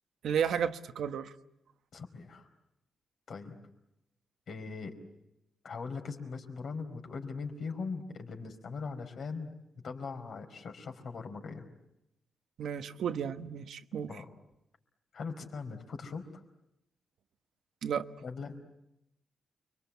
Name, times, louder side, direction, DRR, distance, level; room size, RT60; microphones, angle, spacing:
voice 1, 0.2-1.3 12.6-14.1 17.8-18.1, right 8 dB, 75° right, 1.2 m, -33 dB
voice 2, 1.9-2.5 3.3-3.6 4.5-5.0 5.6-9.5 9.8-11.7 14.1-14.3 15.1-16.4 18.2-18.6, left 4 dB, 55° left, 4.5 m, -40 dB
29.5 x 24.0 x 8.3 m
wide cardioid pair, 160°, 0 cm